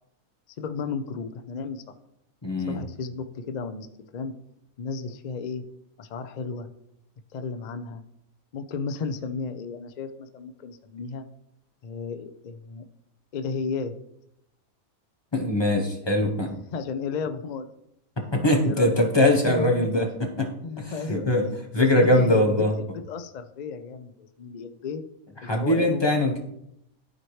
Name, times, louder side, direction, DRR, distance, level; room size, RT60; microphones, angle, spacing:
voice 1, 0.6-1.8 2.7-3.9 4.1-4.3 4.8-5.6 6.0-6.7 7.3-8.0 8.5-11.3 11.8-12.8 13.3-13.9 16.7-17.7 18.6-19.1 19.5-20.1 20.6-22.5 22.8-25.0 25.4-26.0, left 5 dB, 65° left, 9 dB, 0.4 m, -33 dB
voice 2, 2.4-2.8 15.3-16.5 18.3-20.1 20.4-20.5 20.8-21.4 21.7-22.7 25.4-26.4, left 1 dB, 20° left, 2 dB, 0.9 m, -22 dB
12.5 x 4.4 x 3.1 m, 0.77 s
omnidirectional pair, 1.5 m